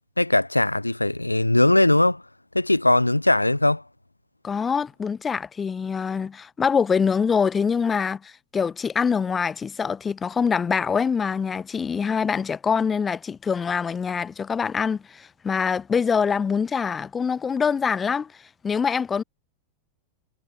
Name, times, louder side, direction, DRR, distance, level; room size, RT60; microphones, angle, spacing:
voice 1, 0.2-2.2 2.5-3.8, left 1 dB, 85° left, 1.6 m, -20 dB
voice 2, 4.4-18.3 18.6-19.2, left 6 dB, 20° left, 3.9 m, -24 dB
figure-of-eight pair, 90°, 0 cm